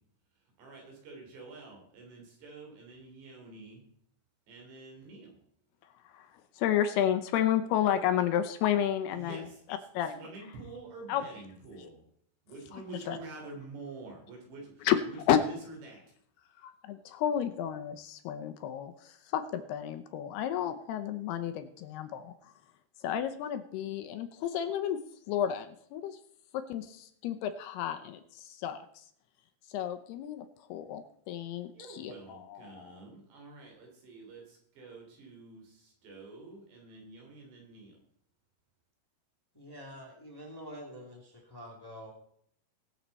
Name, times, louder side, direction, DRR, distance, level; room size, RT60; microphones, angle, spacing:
voice 1, 0.6-3.8 4.5-5.4 9.1-9.6 10.0-12.0 12.5-15.2 15.5-16.0 31.7-37.9, right 3 dB, 75° right, 0 dB, 5.4 m, -48 dB
voice 2, 6.6-9.4 9.9-10.2 11.1-11.2 12.7-12.8 13.1-13.2 14.8-15.0 15.3-15.4 16.6-22.3 23.0-25.0 25.3-26.2 26.5-28.8 29.7-30.4 30.7-33.0, left 10 dB, 80° left, 9 dB, 2.6 m, -31 dB
voice 3, 39.5-42.1, equal, 10° left, -1 dB, 1.5 m, -46 dB
21.5 x 7.3 x 4.1 m, 0.66 s
omnidirectional pair, 4.9 m